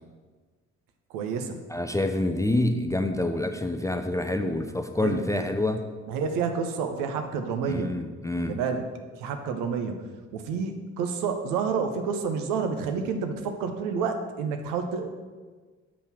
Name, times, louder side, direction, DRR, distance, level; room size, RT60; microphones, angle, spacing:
voice 1, 1.1-1.6 5.0-5.2 6.1-8.0 8.4-8.9 9.2-15.1, right 5 dB, 60° right, 6 dB, 0.9 m, -29 dB
voice 2, 1.7-5.8 7.7-8.6, left 1 dB, 10° left, 6 dB, 0.5 m, -27 dB
6.6 x 5.5 x 6.0 m, 1.4 s
figure-of-eight pair, 45°, 37 cm